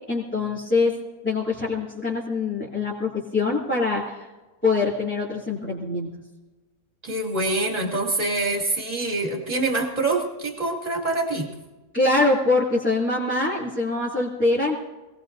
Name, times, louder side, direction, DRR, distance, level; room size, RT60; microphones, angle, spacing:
voice 1, 0.1-0.9 1.2-4.3 4.6-6.1 11.9-14.7, left 3 dB, 5° left, -8 dB, 2.6 m, -24 dB
voice 2, 7.0-11.5, right 2 dB, 20° right, 0 dB, 2.7 m, -25 dB
26.0 x 18.5 x 2.7 m, 1.2 s
omnidirectional pair, 1.9 m